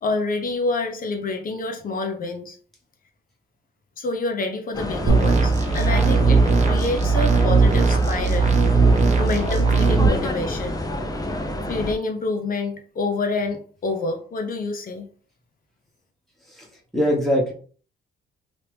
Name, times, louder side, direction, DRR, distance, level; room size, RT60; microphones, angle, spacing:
voice 1, 0.0-2.6 4.0-8.5 9.2-10.8 11.7-15.1, left 3 dB, 45° left, 5 dB, 0.9 m, -27 dB
sound 1, 4.7-11.9, left 1 dB, 20° left, 0.6 m, -28 dB
sound 2, 5.1-10.1, right 4 dB, 35° right, 0.8 m, -18 dB
voice 2, 16.9-17.5, equal, ahead, -3 dB, 1.2 m, -21 dB
3.0 x 2.9 x 3.4 m, 0.43 s
cardioid pair, 90°, 20 cm